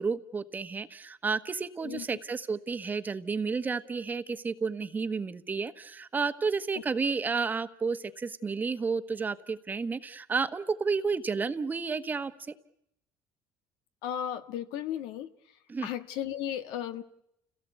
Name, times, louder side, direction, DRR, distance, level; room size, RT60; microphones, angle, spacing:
voice 1, 0.0-12.5 15.7-15.9, right 4 dB, 20° right, 11 dB, 1.2 m, -31 dB
voice 2, 14.0-15.3 15.8-17.0, left 10 dB, 85° left, 10 dB, 1.6 m, -35 dB
29.5 x 17.5 x 8.1 m, 0.78 s
cardioid pair, 125°, 8 cm